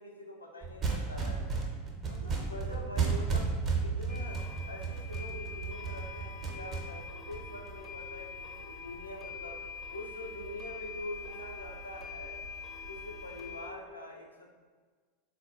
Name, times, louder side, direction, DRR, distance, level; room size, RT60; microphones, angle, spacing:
voice 1, 0.0-1.5 2.1-3.5 3.8-9.6 9.9-12.4 12.9-14.5, left 1 dB, 85° left, 0 dB, 0.4 m, -44 dB
sound 1, 0.6-8.0, right 4 dB, 25° right, 0.6 m, -33 dB
sound 2, 4.1-13.7, left 6 dB, 25° left, 0.5 m, -45 dB
sound 3, 5.6-13.6, right 2 dB, 75° right, 0.3 m, -52 dB
3.8 x 2.2 x 2.4 m, 1.5 s
figure-of-eight pair, 85°, 0 cm